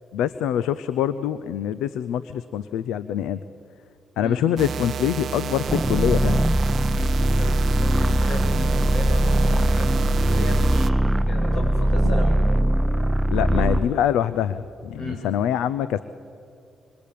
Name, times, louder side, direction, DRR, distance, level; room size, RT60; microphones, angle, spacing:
voice 1, 0.1-3.4 4.2-6.4 13.3-16.0, left 10 dB, 90° left, 15 dB, 0.5 m, -24 dB
sound 1, 4.6-10.9, right 7 dB, 65° right, 0.7 m, -30 dB
sound 2, 5.7-13.9, right 1 dB, 5° right, 0.8 m, -21 dB
voice 2, 6.9-12.4 13.4-13.7 14.9-15.2, left 2 dB, 75° left, 2 dB, 7.7 m, -35 dB
26.5 x 25.0 x 8.5 m, 2.6 s
supercardioid pair, 55°, 0 cm